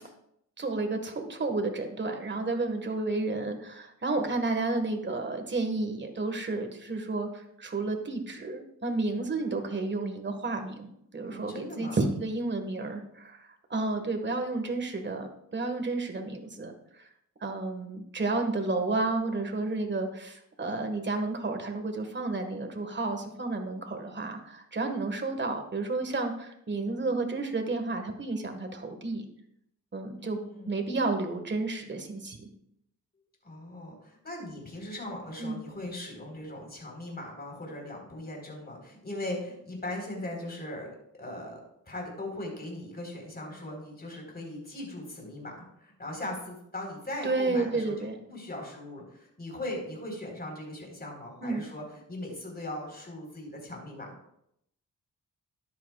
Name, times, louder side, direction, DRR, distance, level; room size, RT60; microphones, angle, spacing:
voice 1, 0.6-10.9 11.1-16.7 17.4-29.3 29.9-30.4 30.7-32.5 35.4-35.6 47.2-48.1 51.4-51.6, right 3 dB, 35° right, 5 dB, 1.6 m, -31 dB
voice 2, 11.3-12.0 30.2-30.7 33.4-41.6 41.9-45.5 45.8-54.1, left 1 dB, 30° left, 0 dB, 4.2 m, -39 dB
13.5 x 10.5 x 2.4 m, 0.74 s
cardioid pair, 90°, 33 cm